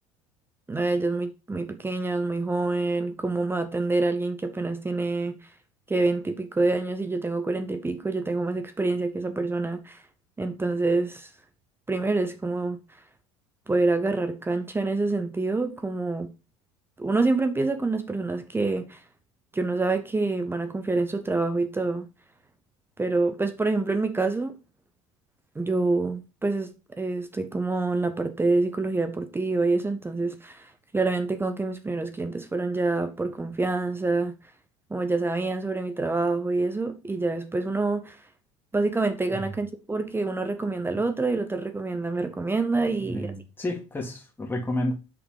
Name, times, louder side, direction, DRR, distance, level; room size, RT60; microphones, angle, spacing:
voice 1, 0.7-5.4 5.9-10.0 10.4-11.3 11.9-12.8 13.7-16.3 17.0-19.0 19.5-22.1 23.0-24.6 25.6-26.7 27.0-34.4 34.9-38.2 38.7-43.3, right 3 dB, 15° right, 0.8 m, -26 dB
voice 2, 42.9-44.9, left 1 dB, 15° left, 1.9 m, -31 dB
5.8 x 3.9 x 5.0 m
hypercardioid pair, 80°, 16 cm